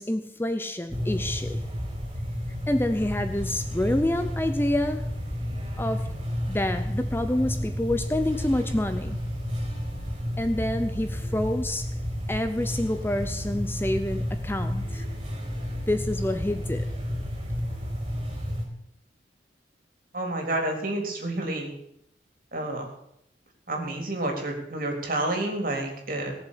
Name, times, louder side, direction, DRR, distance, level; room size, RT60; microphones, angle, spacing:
voice 1, 0.0-1.6 2.7-5.1 5.8-6.2 6.5-9.2 10.4-11.9 12.3-15.0 15.9-16.8, left 1 dB, 10° left, 9 dB, 0.7 m, -27 dB
sound 1, 0.9-18.6, equal, 30° right, 5.1 m, -31 dB
voice 2, 20.1-21.7 22.5-22.9 23.7-26.3, right 1 dB, 50° right, 2 dB, 3.8 m, -29 dB
18.0 x 7.2 x 8.4 m, 0.76 s
head